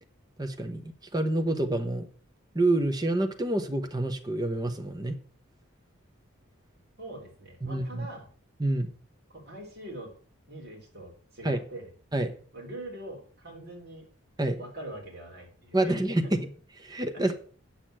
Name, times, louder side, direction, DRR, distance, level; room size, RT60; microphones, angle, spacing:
voice 1, 0.4-0.8 1.1-2.1 2.5-5.2 7.6-8.1 8.6-8.9 11.4-11.6 12.1-12.3 14.4-14.6 15.7-16.4 16.8-17.3, right 1 dB, 20° right, 7 dB, 1.0 m, -27 dB
voice 2, 7.0-8.3 9.3-10.1 10.5-11.9 12.5-14.1 14.6-16.3 17.1-17.2, right 1 dB, 50° right, 0 dB, 3.7 m, -43 dB
8.8 x 6.6 x 7.6 m, 0.43 s
head